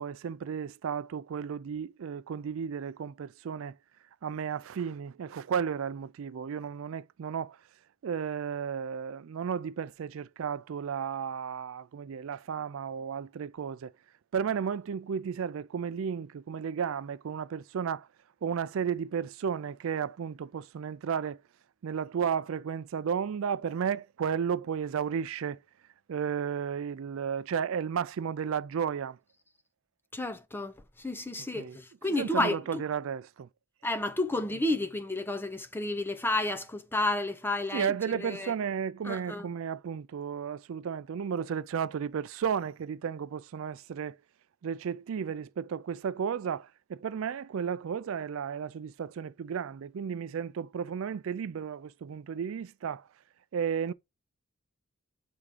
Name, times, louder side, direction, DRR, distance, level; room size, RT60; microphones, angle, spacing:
voice 1, 0.0-3.8 4.2-7.6 8.0-13.9 14.3-18.1 18.4-21.4 21.8-25.6 26.1-29.2 31.6-31.8 32.1-33.5 37.7-44.2 44.6-53.1 53.5-53.9, right 7 dB, 65° right, 0.4 m, -33 dB
voice 2, 30.1-32.8 33.8-38.5 39.0-39.5, left 2 dB, 10° left, 0.6 m, -31 dB
8.2 x 3.6 x 4.9 m
head